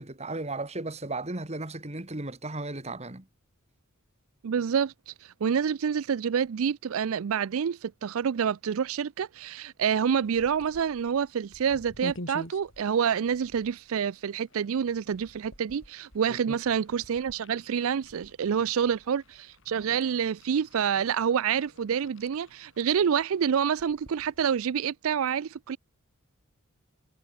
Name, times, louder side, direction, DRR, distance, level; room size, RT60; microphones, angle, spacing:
voice 1, 0.0-3.3 16.3-16.6, right 2 dB, 30° right, 2.2 m, -35 dB
voice 2, 4.4-25.8, right 7 dB, 70° right, 0.4 m, -27 dB
sound 1, 10.2-24.7, left 1 dB, 60° left, 4.4 m, -49 dB
head